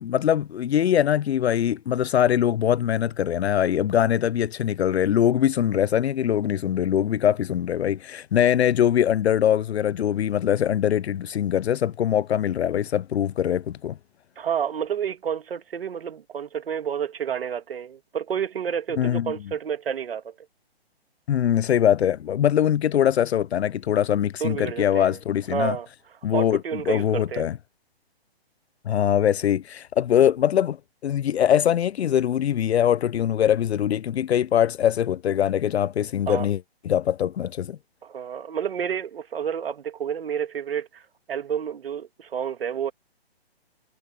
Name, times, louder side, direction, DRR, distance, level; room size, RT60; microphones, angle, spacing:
voice 1, 0.0-14.0 19.0-19.3 21.3-25.8 26.2-26.6 26.9-27.6 28.9-30.8 31.0-36.6 36.9-37.8, left 10 dB, 80° left, 0.5 m, -22 dB
voice 2, 14.4-20.3 24.4-25.2 25.5-25.9 26.3-27.5 36.3-36.5 38.0-41.0 41.3-42.9, right 8 dB, 65° right, 2.7 m, -29 dB
hypercardioid pair, 155°, 32 cm